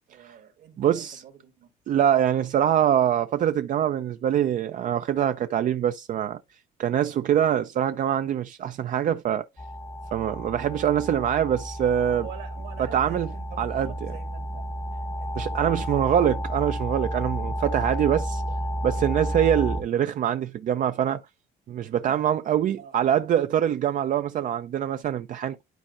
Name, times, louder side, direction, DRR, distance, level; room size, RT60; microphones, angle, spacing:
voice 1, 0.1-1.7 12.2-14.7 15.2-16.2 22.1-22.2 22.8-23.0, right 9 dB, 70° right, 2.1 m, -45 dB
voice 2, 0.8-1.2 1.9-6.4 6.8-9.5 10.1-12.3 12.9-13.3 13.6-13.9 15.4-18.4 18.8-21.2 21.7-25.6, right 10 dB, 50° right, 0.5 m, -24 dB
sound 1, 9.6-19.8, equal, 15° left, 0.8 m, -31 dB
11.5 x 4.3 x 2.5 m
cardioid pair, 110°, 17 cm